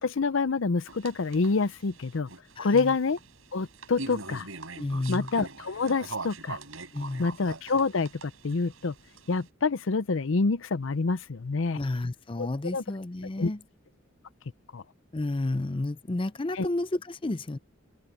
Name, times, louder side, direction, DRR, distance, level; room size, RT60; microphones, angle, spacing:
voice 1, 0.0-2.3 2.6-3.2 3.5-4.5 5.1-6.6 7.2-8.9 9.3-11.8 12.4-12.5 12.7-12.8 13.4-13.5 14.7-14.8 16.5-16.7, left 4 dB, 70° left, 0.6 m, -27 dB
sound 1, 0.9-9.5, right 3 dB, 85° right, 5.4 m, -42 dB
voice 2, 2.6-2.9 4.8-5.3 6.9-7.2 11.7-13.6 15.1-17.6, left 2 dB, 25° left, 0.5 m, -31 dB
head